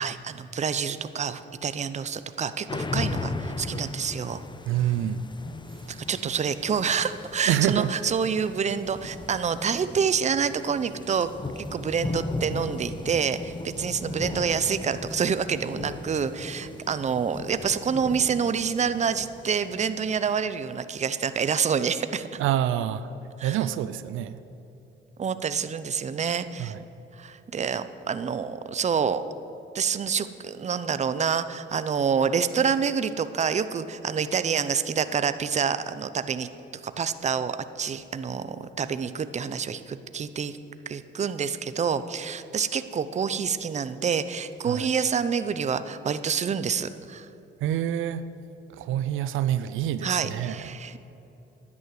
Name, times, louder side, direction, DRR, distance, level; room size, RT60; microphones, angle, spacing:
voice 1, 0.0-4.4 5.9-11.3 11.6-22.4 23.4-23.6 25.2-26.8 27.1-29.2 29.7-36.5 36.8-40.6 40.9-47.3 50.0-51.0, right 6 dB, 35° right, 13 dB, 0.7 m, -27 dB
sound 1, 2.7-20.5, left 3 dB, 25° left, 0.9 m, -37 dB
voice 2, 4.7-5.2 7.4-7.9 22.4-23.1 23.4-24.4 26.6-26.8 44.7-44.9 47.6-48.2 48.7-50.7, right 11 dB, 85° right, 14 dB, 0.5 m, -26 dB
11.0 x 9.7 x 8.2 m, 3.0 s
cardioid pair, 90°, 20 cm